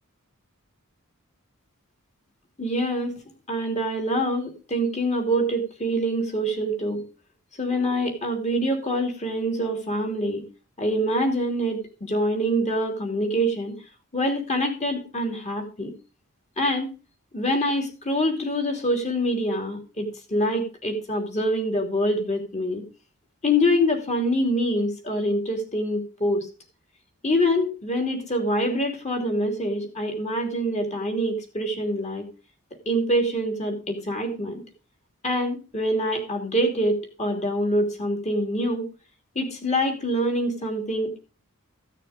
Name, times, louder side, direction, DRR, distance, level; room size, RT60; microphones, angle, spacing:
voice 1, 2.6-3.1 3.5-7.0 7.6-10.4 10.8-13.7 14.1-15.9 16.6-16.9 17.3-22.8 23.4-26.5 27.2-32.2 32.8-34.6 35.2-38.9 39.3-41.2, equal, 30° left, 4 dB, 2.9 m, -25 dB
15.0 x 6.7 x 5.1 m, 0.33 s
head